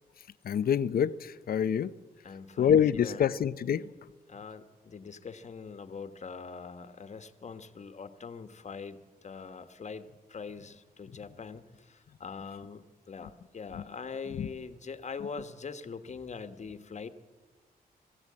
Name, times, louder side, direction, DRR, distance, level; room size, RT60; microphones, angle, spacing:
voice 1, 0.4-1.9 2.6-3.9 13.7-13.8 14.4-14.5, left 8 dB, 70° left, 0.8 m, -26 dB
voice 2, 2.2-3.3 4.3-17.1, left 5 dB, 45° left, 1.5 m, -43 dB
22.0 x 15.5 x 8.7 m
cardioid pair, 95°, 16 cm